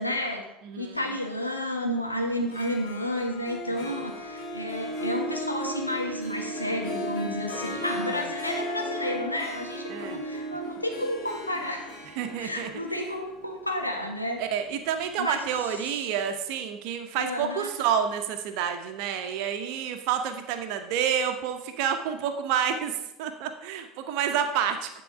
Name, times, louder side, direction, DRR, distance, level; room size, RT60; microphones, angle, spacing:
voice 1, 0.0-0.5 0.8-12.0 12.4-14.4 15.2-15.5 17.1-17.7, left 1 dB, 90° left, 2 dB, 1.2 m, -31 dB
voice 2, 0.6-1.0 3.8-3.9 8.0-8.3 9.9-10.2 12.2-12.7 14.4-25.0, right 8 dB, 60° right, 7 dB, 0.8 m, -29 dB
Harp, 2.4-15.3, equal, 50° left, 2.2 m, -36 dB
10.5 x 3.9 x 6.0 m, 0.88 s
figure-of-eight pair, 65°, 0 cm